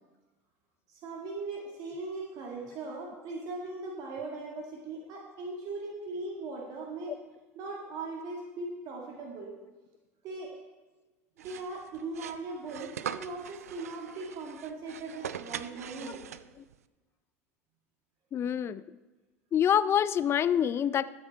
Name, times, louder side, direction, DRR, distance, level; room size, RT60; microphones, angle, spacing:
voice 1, 0.9-7.2 7.6-9.6 10.2-10.6 11.4-16.3, right 3 dB, 55° right, -1 dB, 2.0 m, -39 dB
sound 1, 11.4-16.7, right 9 dB, 85° right, 0.4 m, -42 dB
voice 2, 18.3-18.8 19.5-21.1, left 9 dB, 30° left, 16 dB, 0.4 m, -26 dB
13.0 x 8.1 x 4.1 m, 1.2 s
hypercardioid pair, 75°, 8 cm